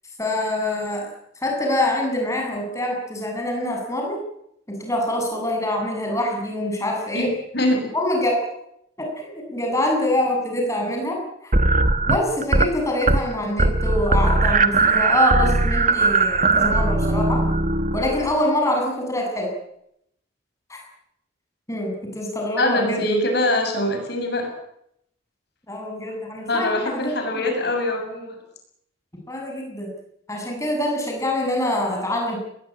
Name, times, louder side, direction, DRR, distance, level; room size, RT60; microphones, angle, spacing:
voice 1, 0.2-1.1 1.4-4.2 4.7-7.3 7.9-8.3 9.0-11.2 11.4-11.5 12.0-17.4 17.9-19.5 20.7-20.8 21.7-23.0 25.7-26.7 26.9-27.5 29.3-29.9 30.3-32.4, left 1 dB, 15° left, 1 dB, 7.9 m, -25 dB
sound 1, 11.5-12.7 13.0-13.3 13.6-18.3, right 3 dB, 40° right, 1.3 m, -19 dB
voice 2, 22.6-24.5 26.5-28.4, left 1 dB, 55° left, 3 dB, 7.5 m, -23 dB
21.5 x 20.5 x 9.0 m, 0.75 s
head